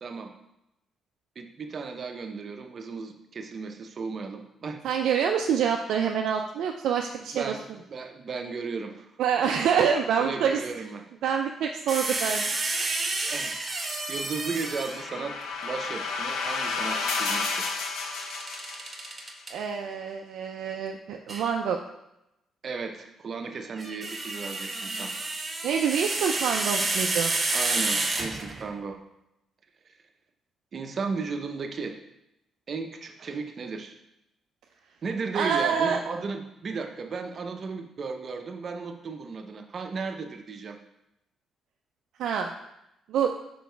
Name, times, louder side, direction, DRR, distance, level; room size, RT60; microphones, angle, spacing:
voice 1, 0.0-0.3 1.4-4.8 7.3-9.1 10.2-11.0 13.3-15.4 15.6-17.8 22.6-25.1 27.5-29.0 30.7-32.0 32.7-34.0 35.0-40.8, right 4 dB, 50° right, 5 dB, 0.7 m, -35 dB
voice 2, 4.8-7.5 9.2-10.6 11.2-12.5 19.5-21.8 25.6-27.3 35.3-36.0 42.2-42.5 43.1-43.3, right 7 dB, 80° right, 2 dB, 0.4 m, -26 dB
sound 1, 11.9-15.2 18.1-19.5 21.3-21.5 23.6-28.7, right 3 dB, 30° right, 1.0 m, -30 dB
sound 2, 14.0-19.2, left 4 dB, 85° left, 0.8 m, -32 dB
5.1 x 4.7 x 4.5 m, 0.87 s
cardioid pair, 90°, 0 cm